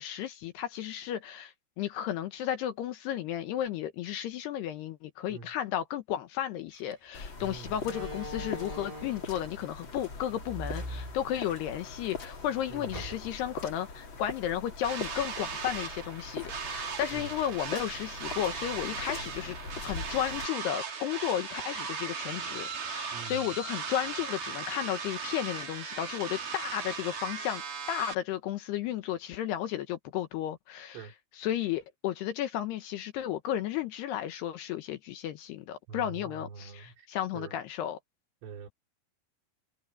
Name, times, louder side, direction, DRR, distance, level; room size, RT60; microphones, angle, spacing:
voice 1, 0.0-31.1 31.3-38.0, left 11 dB, 70° left, 2.7 m, -34 dB
Slam, 6.7-6.9 7.8-9.4 10.4-11.8 12.2-12.3 12.9-13.5, equal, 5° right, 4.4 m, -41 dB
sound 1, 7.1-20.5, left 3 dB, 30° left, 3.2 m, -42 dB
voice 2, 7.4-7.8 12.7-13.2 17.1-17.3 23.1-23.5 30.9-31.1 35.9-37.1 37.3-37.6 38.4-38.7, right 5 dB, 85° right, 6.3 m, -44 dB
noise mic, 14.8-28.1, right 5 dB, 45° right, 4.5 m, -38 dB
omnidirectional pair, 5.6 m